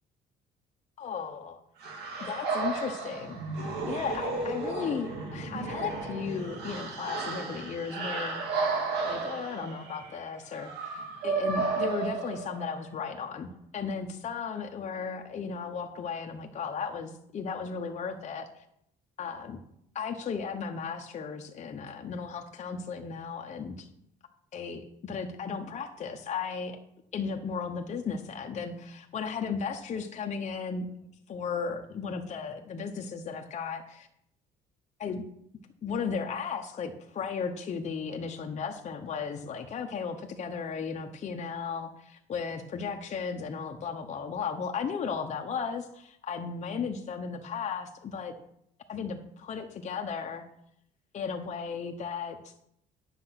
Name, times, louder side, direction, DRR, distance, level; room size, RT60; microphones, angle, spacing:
voice 1, 1.0-1.6 2.2-8.7 9.0-18.6 19.2-19.6 19.9-23.9 24.5-26.8 27.1-30.9 31.3-34.1 35.0-35.2 35.8-48.3 48.9-50.4 51.1-52.5, left 6 dB, 45° left, 3 dB, 1.0 m, -35 dB
sound 1, 1.8-12.9, right 4 dB, 75° right, 2.4 m, -33 dB
9.9 x 6.9 x 5.9 m, 0.73 s
cardioid pair, 110°, 17 cm